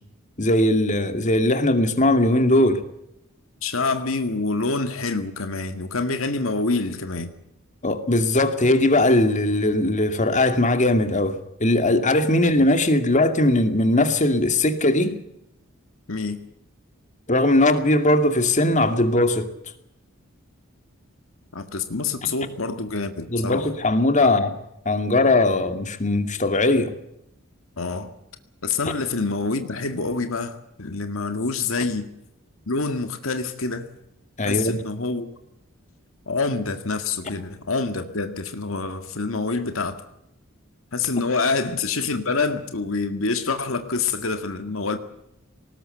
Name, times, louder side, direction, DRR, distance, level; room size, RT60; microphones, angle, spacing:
voice 1, 0.4-2.8 7.8-15.2 17.3-19.5 22.2-22.3 23.3-24.5 24.9-26.9 34.4-34.8, left 1 dB, 35° left, 2.4 m, -20 dB
voice 2, 3.6-7.3 12.6-12.7 16.1-16.4 21.5-23.7 27.8-28.1 28.6-32.1 32.7-33.9 34.4-35.3 36.3-40.0 40.9-45.0, left 3 dB, 75° left, 1.9 m, -26 dB
20.0 x 19.0 x 8.0 m
head